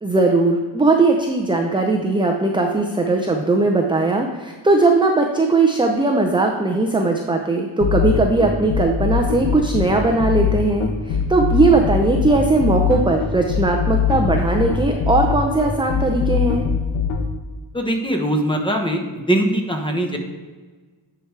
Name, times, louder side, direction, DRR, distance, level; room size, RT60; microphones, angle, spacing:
voice 1, 0.0-16.6, right 3 dB, 10° right, 2 dB, 0.5 m, -19 dB
sound 1, 7.8-17.2, left 7 dB, 80° left, 1.1 m, -21 dB
voice 2, 17.7-20.2, right 1 dB, 10° left, 3 dB, 0.9 m, -21 dB
9.8 x 4.8 x 3.2 m, 1.4 s
wide cardioid pair, 110°, 47 cm